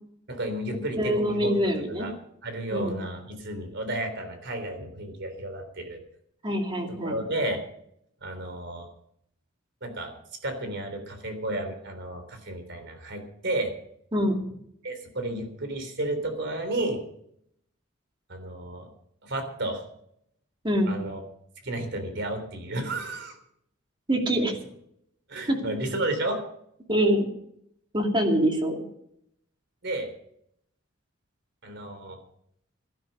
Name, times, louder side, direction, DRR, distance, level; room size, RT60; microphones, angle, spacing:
voice 1, 0.3-1.7 2.0-2.1 2.4-6.1 6.9-7.6 8.2-8.9 9.8-10.1 10.4-13.7 14.8-17.0 18.3-18.9 19.2-19.8 20.9-21.2 21.6-23.4 25.3-26.4 29.8-30.1 31.6-32.2, right 1 dB, 60° right, 7 dB, 3.6 m, -32 dB
voice 2, 1.0-2.1 2.7-3.0 6.4-7.2 14.1-14.4 20.6-20.9 24.1-24.5 25.5-25.6 26.9-27.3 27.9-28.8, equal, 25° right, 2 dB, 2.6 m, -24 dB
17.0 x 12.0 x 5.4 m, 0.72 s
head